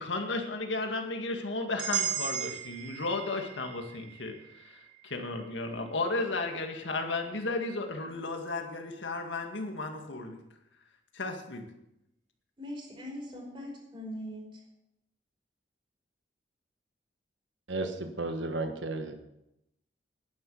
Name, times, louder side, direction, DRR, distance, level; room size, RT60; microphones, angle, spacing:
voice 1, 0.0-10.4 11.1-11.7, left 3 dB, 85° left, 4 dB, 2.0 m, -34 dB
sound 1, 1.8-5.8, right 8 dB, 50° right, 3.4 m, -37 dB
voice 2, 12.6-14.6, equal, 30° right, -1 dB, 5.0 m, -41 dB
voice 3, 17.7-19.1, right 2 dB, 85° right, 6 dB, 1.4 m, -33 dB
11.0 x 10.5 x 7.0 m, 0.86 s
head